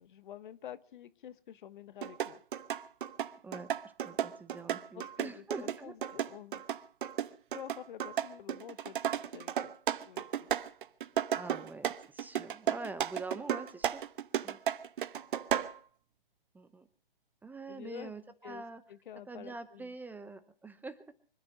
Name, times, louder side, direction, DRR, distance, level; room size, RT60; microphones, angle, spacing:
voice 1, 0.0-2.4 4.9-6.6 7.5-9.7 10.0-10.5 15.6-15.7 17.7-18.1 18.4-18.6 18.9-19.9, left 10 dB, 55° left, 15 dB, 1.1 m, -48 dB
sound 1, 2.0-15.8, right 9 dB, 60° right, 1.0 m, -34 dB
voice 2, 4.0-5.9 11.3-14.0 14.4-14.6 16.5-16.9 17.4-18.8 19.3-21.0, right 3 dB, 5° right, 12 dB, 0.7 m, -44 dB
25.0 x 9.7 x 6.0 m, 0.43 s
hypercardioid pair, 125°, 29 cm